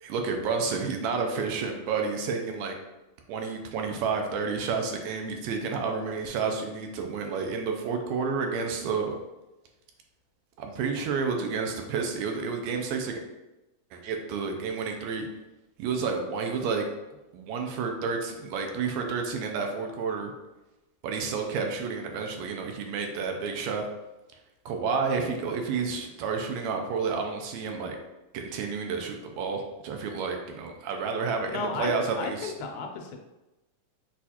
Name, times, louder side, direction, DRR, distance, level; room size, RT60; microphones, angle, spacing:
voice 1, 0.0-2.8 3.3-9.1 10.6-13.2 13.9-15.3 15.8-16.9 17.3-20.3 21.0-23.9 24.6-28.0 28.3-32.5, right 5 dB, 80° right, 3 dB, 1.7 m, -30 dB
voice 2, 31.5-33.2, left 4 dB, 85° left, 3 dB, 2.0 m, -34 dB
6.1 x 2.4 x 2.8 m, 1.0 s
omnidirectional pair, 3.4 m